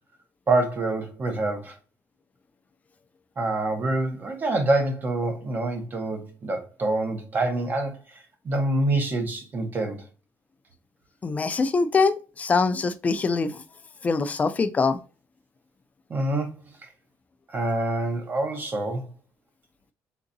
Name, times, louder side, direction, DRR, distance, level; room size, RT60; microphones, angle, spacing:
voice 1, 0.5-1.8 3.4-8.2 8.4-10.1 16.1-16.6 17.5-19.0, right 2 dB, 30° right, 0.8 m, -26 dB
voice 2, 11.2-13.6 14.0-15.0, left 4 dB, 25° left, 0.4 m, -23 dB
3.7 x 2.8 x 2.6 m
cardioid pair, 135°, 6 cm